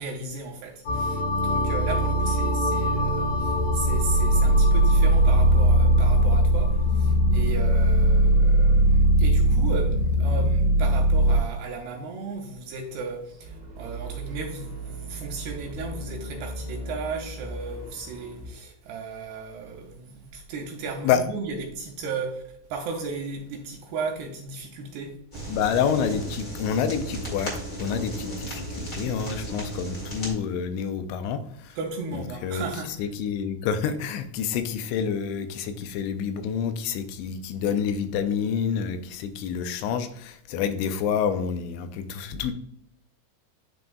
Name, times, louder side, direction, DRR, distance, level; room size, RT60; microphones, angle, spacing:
voice 1, 0.0-22.4 22.7-25.5 31.8-32.9, right 4 dB, 85° right, 2.4 m, -35 dB
sound 1, 0.9-11.4, right 1 dB, 55° left, 2.2 m, -20 dB
sound 2, 13.3-18.5, right 2 dB, 65° right, 0.7 m, -38 dB
sound 3, 25.3-30.3, right 2 dB, 35° left, 1.3 m, -35 dB
voice 2, 25.5-27.5 27.8-31.8 32.1-42.5, left 7 dB, 85° left, 2.8 m, -28 dB
10.5 x 3.9 x 2.3 m
omnidirectional pair, 5.2 m